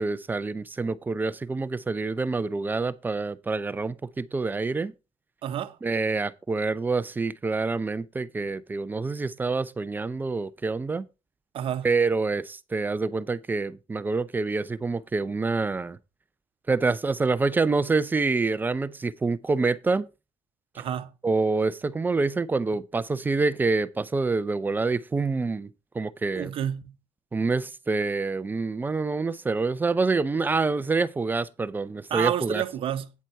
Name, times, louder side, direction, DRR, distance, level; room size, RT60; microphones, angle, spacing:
voice 1, 0.0-4.9 5.8-11.1 11.8-16.0 16.7-20.1 20.7-20.8 21.2-25.7 25.9-26.5 27.3-32.6, right 3 dB, 15° right, 0.5 m, -26 dB
voice 2, 5.4-5.8 11.5-11.9 20.8-21.1 26.4-26.9 32.1-33.1, right 10 dB, 55° right, 0.9 m, -29 dB
9.3 x 7.3 x 4.5 m
cardioid pair, 135°, 11 cm